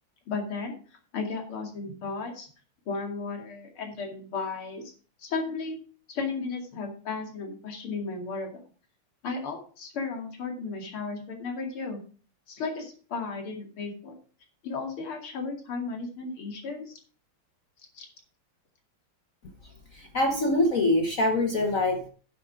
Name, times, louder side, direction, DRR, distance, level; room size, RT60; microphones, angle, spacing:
voice 1, 0.3-0.8 1.1-2.5 2.9-4.9 5.2-5.8 6.1-8.6 9.2-12.0 12.5-14.1 14.6-17.0 17.9-18.1, left 4 dB, 80° left, 2 dB, 3.3 m, -34 dB
voice 2, 19.6-22.1, left 2 dB, 45° left, 4 dB, 1.4 m, -25 dB
9.7 x 8.3 x 4.8 m, 0.40 s
omnidirectional pair, 2.4 m